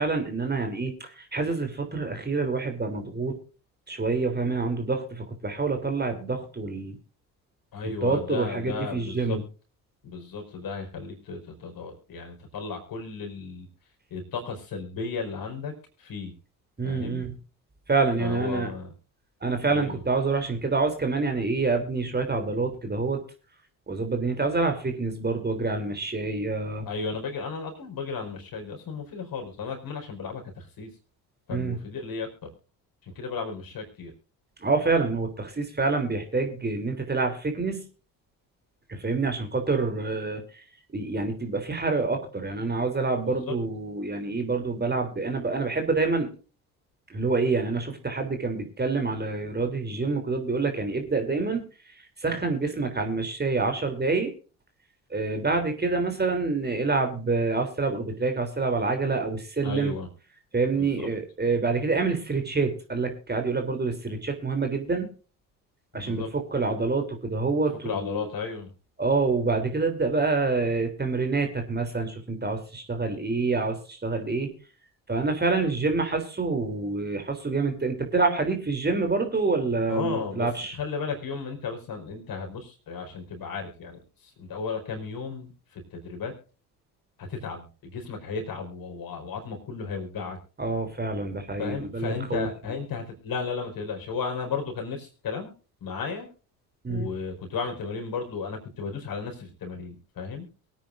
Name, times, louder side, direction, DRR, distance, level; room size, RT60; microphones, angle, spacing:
voice 1, 0.0-3.3 3.9-7.0 8.0-9.4 16.8-17.3 17.9-18.7 19.4-23.2 23.9-26.9 31.5-31.8 34.6-37.8 38.9-40.4 40.9-46.3 47.1-51.6 52.2-54.3 55.1-59.9 60.5-65.1 65.9-68.2 69.0-74.5 75.1-80.8 90.6-92.5 96.8-97.1, right 3 dB, 20° right, 5 dB, 3.3 m, -27 dB
voice 2, 7.7-9.4 10.0-13.7 14.1-15.7 16.0-16.3 16.8-17.2 18.2-18.9 19.7-20.0 26.8-30.9 31.5-32.3 33.1-34.1 43.2-43.5 59.6-60.1 60.7-61.1 65.9-66.3 67.8-68.7 79.9-80.5 80.7-86.3 87.2-90.4 91.6-95.5 95.8-96.3 96.9-100.5, left 5 dB, 50° left, 3 dB, 4.9 m, -34 dB
23.0 x 9.3 x 2.6 m, 0.36 s
hypercardioid pair, 55°, 44 cm